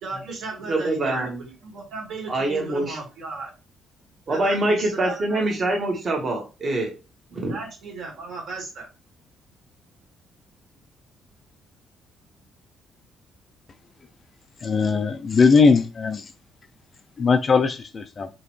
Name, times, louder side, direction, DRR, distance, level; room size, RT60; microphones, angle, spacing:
voice 1, 0.0-3.5 4.3-5.4 7.4-8.9, right 3 dB, 50° right, 1.8 m, -35 dB
voice 2, 0.7-1.4 2.3-3.0 4.3-7.0 7.3-7.5, right 2 dB, 30° right, 1.3 m, -24 dB
voice 3, 14.6-16.2 17.2-18.3, left 5 dB, 25° left, 0.3 m, -19 dB
5.0 x 3.0 x 3.1 m
cardioid pair, 170°, 0 cm